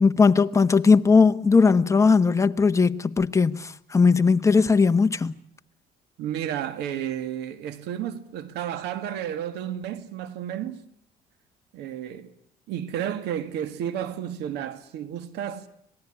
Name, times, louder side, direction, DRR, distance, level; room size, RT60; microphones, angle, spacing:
voice 1, 0.0-5.3, left 4 dB, 15° left, 1.1 m, -19 dB
voice 2, 6.2-10.8 11.7-12.3 12.7-15.7, right 10 dB, 85° right, 1.8 m, -32 dB
26.0 x 18.5 x 9.9 m
cardioid pair, 110°, 17 cm